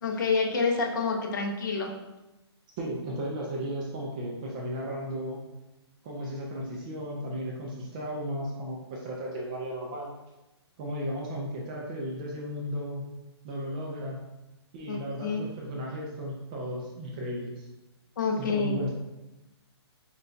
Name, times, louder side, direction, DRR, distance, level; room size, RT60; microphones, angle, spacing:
voice 1, 0.0-1.9 14.9-15.4 18.2-18.8, left 4 dB, 45° left, 2 dB, 0.7 m, -28 dB
voice 2, 2.8-5.4 6.0-10.1 10.8-13.0 13.4-14.2 14.7-17.7 18.4-18.9, equal, 15° right, -3 dB, 0.3 m, -35 dB
6.5 x 2.3 x 2.6 m, 1.0 s
hypercardioid pair, 165°, 14 cm